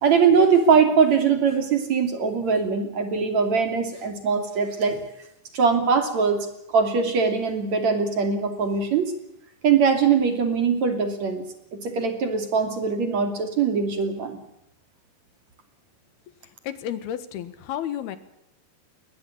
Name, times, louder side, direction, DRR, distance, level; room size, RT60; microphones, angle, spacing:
voice 1, 0.0-5.0 5.5-6.5 6.7-9.1 9.6-11.4 11.7-14.4, right 5 dB, 50° right, 7 dB, 3.6 m, -21 dB
voice 2, 16.6-18.2, left 10 dB, 75° left, 13 dB, 3.4 m, -31 dB
21.5 x 19.5 x 8.6 m, 0.83 s
omnidirectional pair, 4.5 m